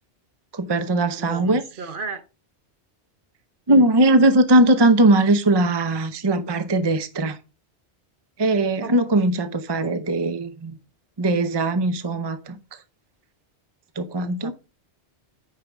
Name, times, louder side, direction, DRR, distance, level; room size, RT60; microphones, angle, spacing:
voice 1, 0.5-1.6 3.7-7.4 8.4-10.7 11.2-12.5 14.0-14.5, right 1 dB, 30° right, 0.6 m, -19 dB
voice 2, 1.2-2.2 3.7-3.9 8.8-8.9 9.2-9.3 14.2-14.5, right 4 dB, 55° right, 1.0 m, -34 dB
9.2 x 4.9 x 3.4 m
omnidirectional pair, 1.1 m